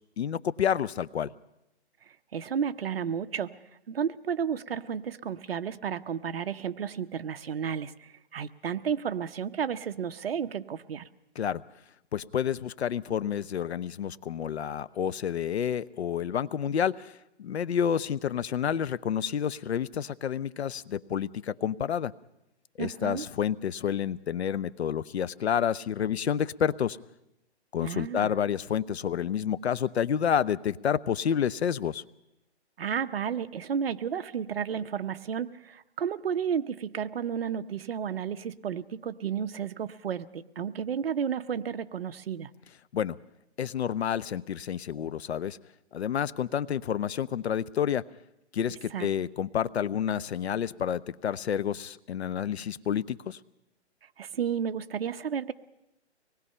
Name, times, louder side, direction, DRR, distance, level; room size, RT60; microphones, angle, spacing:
voice 1, 0.2-1.3 11.4-11.6 12.1-22.1 22.8-27.0 27.7-32.0 42.9-43.2 43.6-45.6 45.9-48.0 48.5-53.4, left 8 dB, 70° left, 17 dB, 0.8 m, -29 dB
voice 2, 2.3-3.5 3.9-11.1 22.8-23.2 27.8-28.3 32.8-42.5 48.9-49.1 54.2-55.5, right 7 dB, 60° right, 11 dB, 0.9 m, -32 dB
24.5 x 20.0 x 5.6 m, 0.89 s
hypercardioid pair, 165°, 34 cm